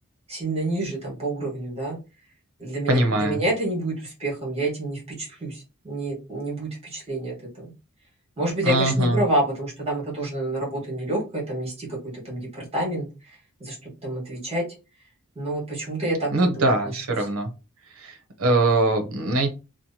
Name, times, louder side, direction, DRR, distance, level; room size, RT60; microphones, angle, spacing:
voice 1, 0.3-2.0 2.6-7.7 8.4-12.0 12.2-14.6 15.3-17.3, right 1 dB, 30° right, -3 dB, 1.4 m, -28 dB
voice 2, 2.9-3.4 8.6-9.2 16.3-17.5 18.0-19.5, right 2 dB, 65° right, 5 dB, 0.7 m, -22 dB
3.0 x 2.1 x 2.7 m, 0.30 s
head